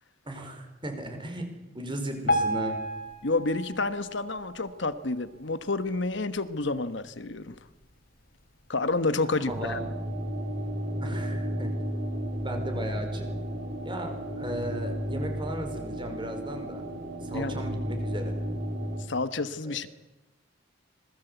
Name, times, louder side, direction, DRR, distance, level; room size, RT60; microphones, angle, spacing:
voice 1, 0.2-1.5 1.7-2.8 9.3-9.8 11.0-11.7 12.4-13.3 13.8-16.8 17.2-18.4 19.6-19.9, right 1 dB, 25° right, 5 dB, 5.0 m, -36 dB
Piano, 2.3-5.4 5.9-6.1 6.4-6.5 7.2-7.3 7.8-7.9, equal, 50° left, 3.3 m, -32 dB
voice 2, 3.2-7.5 8.7-9.8 17.3-17.5 19.1-19.9, left 3 dB, 65° left, 12 dB, 1.2 m, -29 dB
sound 1, 9.5-19.0, equal, 55° right, 3.9 m, -33 dB
26.0 x 21.0 x 8.1 m, 1.0 s
head